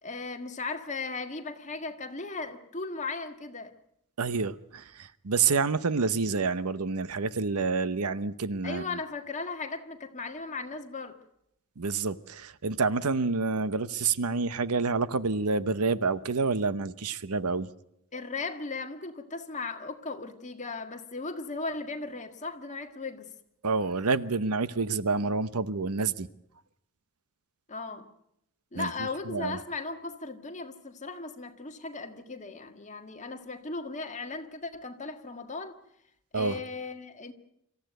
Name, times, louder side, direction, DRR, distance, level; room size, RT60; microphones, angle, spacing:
voice 1, 0.0-3.7 8.6-11.2 18.1-23.3 27.7-28.1 28.7-35.8 36.3-37.3, left 3 dB, 35° left, 1.7 m, -37 dB
voice 2, 4.2-8.8 11.8-17.7 23.6-26.3 28.8-28.9 29.3-29.6 36.3-36.6, right 4 dB, 85° right, 0.9 m, -28 dB
25.5 x 14.5 x 9.2 m
head